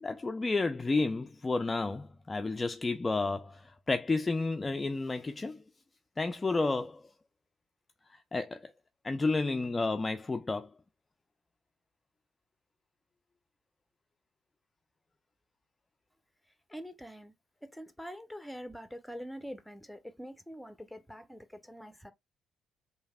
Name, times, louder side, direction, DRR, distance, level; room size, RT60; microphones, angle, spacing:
voice 1, 0.0-5.6 6.2-7.1 8.1-8.7 9.0-10.7, left 3 dB, 25° left, 0.3 m, -31 dB
voice 2, 16.7-17.3 17.6-22.1, equal, ahead, 0.7 m, -45 dB
3.2 x 2.7 x 2.2 m
figure-of-eight pair, 45°, 0 cm